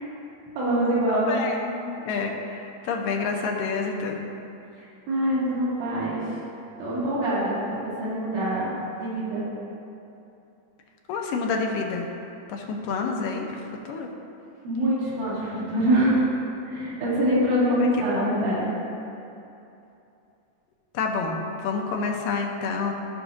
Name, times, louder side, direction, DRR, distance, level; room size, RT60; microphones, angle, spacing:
voice 1, 0.6-1.3 4.8-6.4 6.8-7.6 8.0-9.4 14.6-16.4 16.7-18.7, right 1 dB, 70° right, -8 dB, 3.5 m, -24 dB
voice 2, 1.1-4.3 11.1-12.1 12.5-14.1 17.8-17.9 18.2-18.3 20.9-22.9, left 4 dB, 80° left, 2 dB, 2.4 m, -28 dB
15.0 x 5.9 x 2.6 m, 2.8 s
omnidirectional pair, 3.9 m